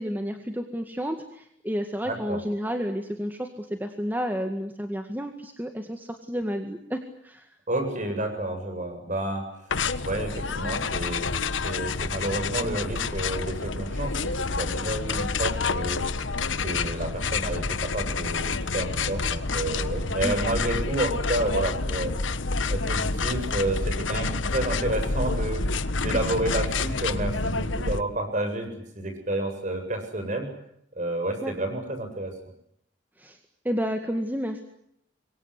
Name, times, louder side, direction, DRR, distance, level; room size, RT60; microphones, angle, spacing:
voice 1, 0.0-7.6 20.2-20.3 26.1-26.2 31.4-31.5 33.2-33.4 33.6-34.6, equal, 10° right, 5 dB, 1.9 m, -31 dB
voice 2, 2.0-2.4 7.7-9.4 10.0-11.3 11.6-16.0 16.6-22.1 22.7-25.6 26.0-30.5 31.0-32.3, right 1 dB, 40° right, 6 dB, 7.8 m, -30 dB
sound 1, 9.7-28.0, left 4 dB, 85° left, 1.3 m, -28 dB
27.0 x 23.5 x 8.3 m, 0.73 s
head